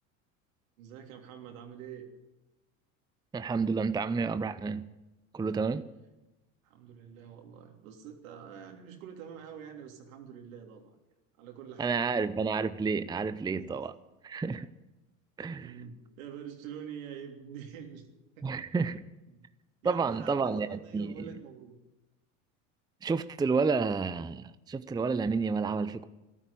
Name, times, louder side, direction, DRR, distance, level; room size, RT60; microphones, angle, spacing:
voice 1, 0.8-2.0 5.5-5.9 6.6-11.0 11.4-12.0 15.6-18.1 18.4-18.7 19.3-19.4 19.8-21.7, right 8 dB, 75° right, 3.3 m, -46 dB
voice 2, 3.3-4.9 5.3-5.9 11.8-13.9 14.2-14.7 15.4-15.7 18.4-19.0 19.8-21.2 23.0-26.1, right 4 dB, 10° right, 0.6 m, -30 dB
14.0 x 12.5 x 8.4 m
hypercardioid pair, 90°, 40 cm